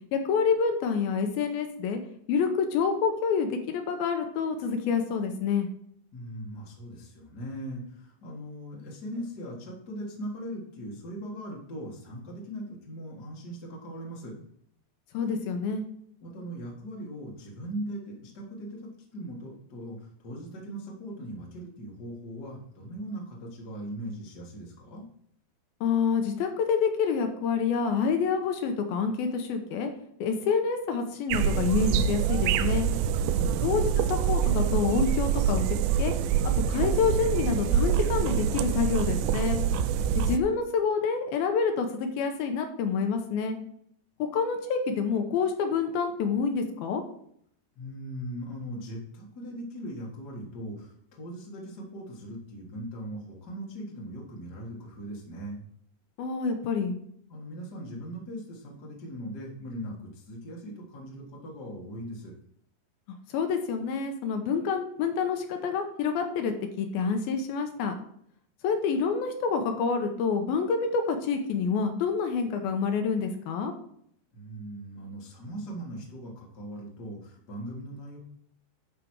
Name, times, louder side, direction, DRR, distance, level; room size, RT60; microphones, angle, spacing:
voice 1, 0.1-2.0 2.3-5.7 15.1-15.8 25.8-29.9 30.2-32.9 33.6-35.6 36.0-36.1 36.7-39.6 40.2-43.6 44.2-47.0 56.2-57.0 63.3-67.9 68.6-73.7, left 5 dB, 75° left, 5 dB, 2.4 m, -27 dB
voice 2, 6.1-14.3 16.2-25.0 33.3-33.9 47.7-55.6 57.3-62.3 74.3-78.2, right 1 dB, 55° left, -3 dB, 1.1 m, -39 dB
sound 1, 31.3-40.4, right 8 dB, 90° right, 2.2 m, -25 dB
11.5 x 5.1 x 4.6 m, 0.68 s
omnidirectional pair, 5.0 m